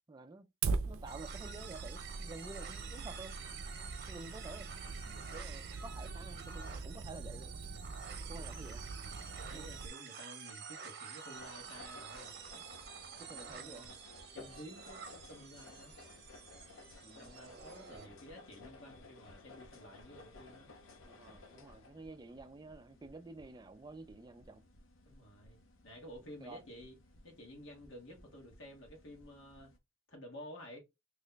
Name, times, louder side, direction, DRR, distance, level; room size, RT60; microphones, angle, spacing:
voice 1, 0.1-0.5 0.8-3.4 4.1-7.6 8.3-8.9 9.5-9.7 12.6-12.7 13.2-13.9 17.0-17.4 21.0-24.6 26.4-26.6, right 3 dB, 20° right, 0.4 m, -50 dB
Fire, 0.6-9.9, right 4 dB, 90° right, 0.4 m, -42 dB
sound 1, 1.1-18.1, right 7 dB, 55° right, 0.7 m, -49 dB
voice 2, 9.2-12.3 13.1-14.0 14.3-16.0 17.1-20.7 25.0-27.0 27.2-29.7 30.1-30.8, equal, 70° left, 1.4 m, -52 dB
sound 2, 11.3-29.8, left 3 dB, 90° left, 0.7 m, -57 dB
3.0 x 2.2 x 3.9 m
head